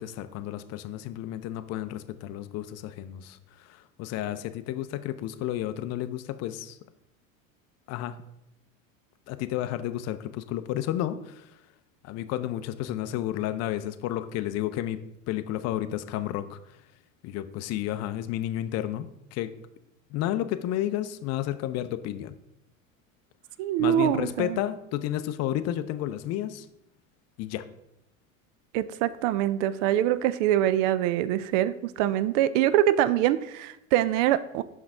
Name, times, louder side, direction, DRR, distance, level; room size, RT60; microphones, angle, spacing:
voice 1, 0.0-3.4 3.6-6.8 7.9-8.2 9.3-11.5 12.0-16.6 17.2-19.5 20.1-22.3 23.8-26.7 27.4-27.7, left 12 dB, 40° left, 12 dB, 0.5 m, -31 dB
voice 2, 23.6-24.6 28.7-34.6, right 12 dB, 65° right, 15 dB, 0.5 m, -24 dB
5.7 x 5.4 x 3.6 m, 0.83 s
hypercardioid pair, 85°, 41 cm